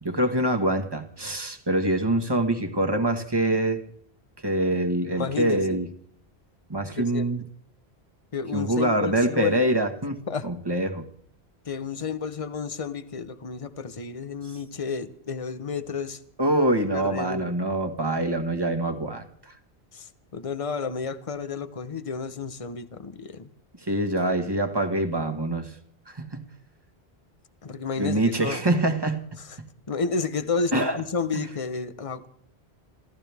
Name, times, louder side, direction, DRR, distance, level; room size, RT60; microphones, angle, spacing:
voice 1, 0.0-3.8 4.4-5.9 6.7-7.4 8.5-11.0 16.4-19.5 23.8-25.8 26.1-26.4 28.0-29.2 30.7-31.0, right 1 dB, 20° right, 1.6 m, -25 dB
voice 2, 5.1-5.8 6.9-7.3 8.3-9.6 10.3-10.5 11.6-16.2 16.9-17.5 19.9-23.5 27.6-28.6 29.4-29.6 29.9-32.3, left 5 dB, 35° left, 0.9 m, -31 dB
28.0 x 14.0 x 3.5 m
omnidirectional pair, 1.1 m